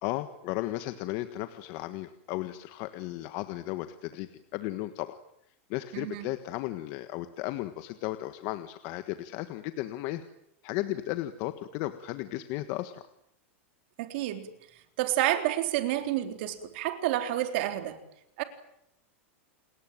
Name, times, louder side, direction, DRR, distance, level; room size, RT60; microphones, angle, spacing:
voice 1, 0.0-5.2 5.7-10.2 10.6-13.0, left 16 dB, 45° left, 1.5 m, -35 dB
voice 2, 5.9-6.3 14.0-14.5 15.0-18.0 18.4-18.5, right 13 dB, 55° right, 3.8 m, -29 dB
29.5 x 20.5 x 9.1 m
supercardioid pair, 160°, 7 cm